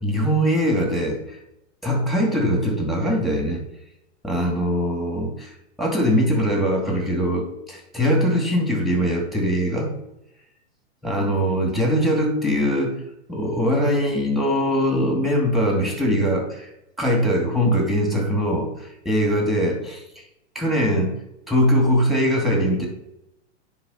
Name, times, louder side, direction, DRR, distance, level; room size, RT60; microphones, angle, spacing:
voice 1, 0.0-1.4 1.8-3.6 4.2-5.5 5.8-9.9 11.0-13.0 13.3-16.7 17.0-20.2 20.5-21.2 21.5-22.9, equal, ahead, 0 dB, 2.6 m, -22 dB
9.4 x 3.8 x 5.7 m, 0.85 s
hypercardioid pair, 125°, 33 cm